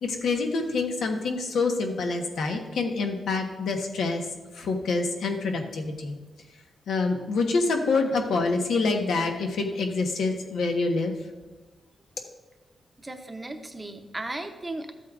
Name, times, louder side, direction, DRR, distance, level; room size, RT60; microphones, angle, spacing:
voice 1, 0.0-4.3 4.5-6.2 6.9-11.1, left 3 dB, 85° left, 3 dB, 1.2 m, -26 dB
voice 2, 13.0-14.9, right 2 dB, 15° right, 5 dB, 0.7 m, -36 dB
13.0 x 8.3 x 2.5 m, 1.2 s
wide cardioid pair, 145°, 0 cm